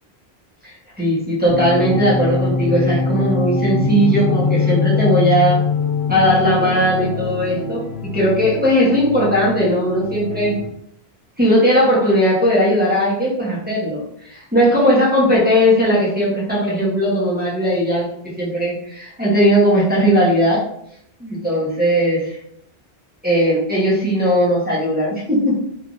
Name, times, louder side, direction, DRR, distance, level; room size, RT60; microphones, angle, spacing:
voice 1, 0.6-5.6 6.1-7.8 8.1-10.6 11.4-18.1 18.4-20.6 21.2-22.4 23.2-25.6, equal, 10° right, -7 dB, 0.8 m, -17 dB
sound 1, 1.5-10.6, left 4 dB, 80° left, 0.8 m, -22 dB
3.3 x 2.4 x 2.5 m, 0.72 s
omnidirectional pair, 1.1 m